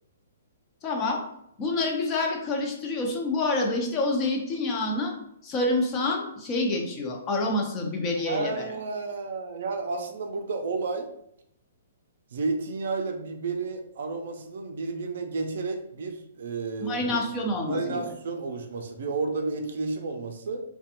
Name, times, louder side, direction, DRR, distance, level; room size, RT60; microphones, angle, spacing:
voice 1, 0.8-1.2 1.6-5.1 5.4-8.6 16.8-18.0, left 2 dB, 25° left, 1 dB, 0.5 m, -27 dB
voice 2, 8.2-11.1 12.3-17.0 17.7-20.6, right 3 dB, 65° right, 5 dB, 0.4 m, -31 dB
2.4 x 2.2 x 2.8 m, 0.76 s
hypercardioid pair, 150°, 0 cm